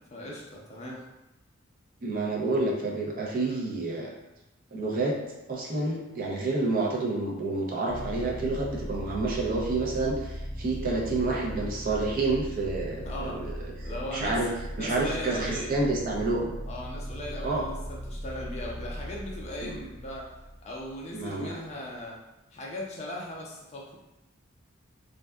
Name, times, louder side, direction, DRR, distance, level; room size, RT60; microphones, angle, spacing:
voice 1, 0.1-1.0 3.4-3.6 13.0-14.4 14.8-15.9 16.7-20.3 20.6-22.2 22.5-24.0, left 1 dB, 30° left, -3 dB, 0.5 m, -38 dB
voice 2, 2.0-4.1 4.7-5.2 5.5-14.5 14.8-16.5 17.4-17.6 19.6-19.8 21.1-21.6, right 2 dB, 45° right, -2 dB, 0.5 m, -29 dB
sound 1, 7.9-21.3, equal, 65° right, 0.9 m, -38 dB
2.6 x 2.2 x 2.2 m, 0.96 s
head